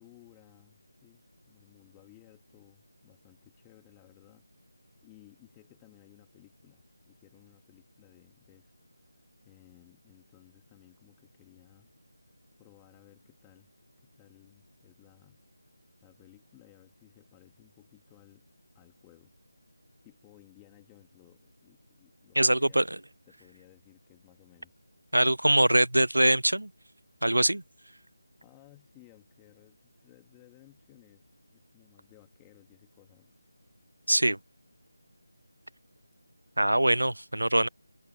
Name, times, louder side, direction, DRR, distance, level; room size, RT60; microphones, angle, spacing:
voice 1, 0.0-4.5 4.7-8.7 9.4-11.9 12.6-13.7 14.0-15.4 16.0-18.5 18.7-19.3 20.0-22.9 23.3-24.7 28.4-33.3, left 29 dB, 10° left, 2.2 m, -59 dB
voice 2, 22.4-22.8 25.1-26.7 27.2-27.6 34.1-34.4 36.6-37.7, right 1 dB, 85° right, 0.5 m, -23 dB
figure-of-eight pair, 165°, 0 cm